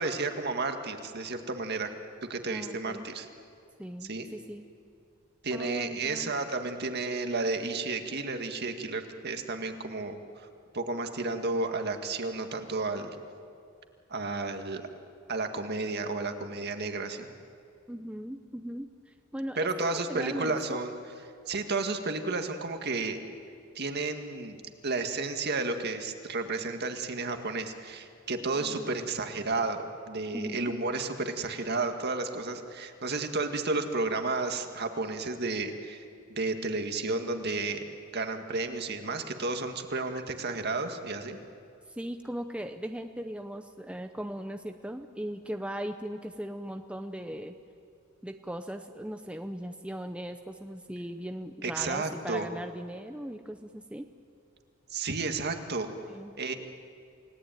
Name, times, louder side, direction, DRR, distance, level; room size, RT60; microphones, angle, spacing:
voice 1, 0.0-1.9 2.3-3.3 4.0-4.3 5.4-10.5 10.7-13.2 14.1-14.8 15.3-17.3 19.6-20.9 21.5-23.2 23.8-29.8 30.1-36.0 36.3-37.8 38.1-41.4 51.6-52.5 54.9-55.9 56.4-56.5, right 3 dB, 50° right, 6 dB, 1.9 m, -32 dB
voice 2, 2.5-3.1 3.8-4.7 5.5-6.3 17.9-20.8 28.5-29.0 30.3-30.7 41.9-47.5 48.2-54.1 56.0-56.4, equal, 5° right, 6 dB, 0.7 m, -39 dB
28.5 x 18.0 x 9.2 m, 2.4 s
head